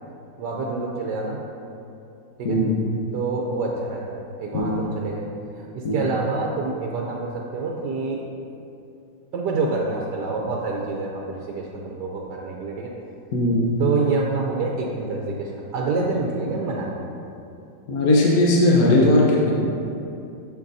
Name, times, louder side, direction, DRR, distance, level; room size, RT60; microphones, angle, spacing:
voice 1, 0.4-1.4 2.4-2.6 3.1-5.3 5.6-8.2 9.3-12.9 13.8-17.0, right 3 dB, 75° right, -1 dB, 1.2 m, -27 dB
voice 2, 2.4-2.8 4.5-4.7 5.8-6.0 13.3-13.8 17.9-19.5, left 1 dB, 60° left, -3 dB, 1.2 m, -18 dB
8.6 x 6.7 x 2.7 m, 2.6 s
omnidirectional pair, 1.9 m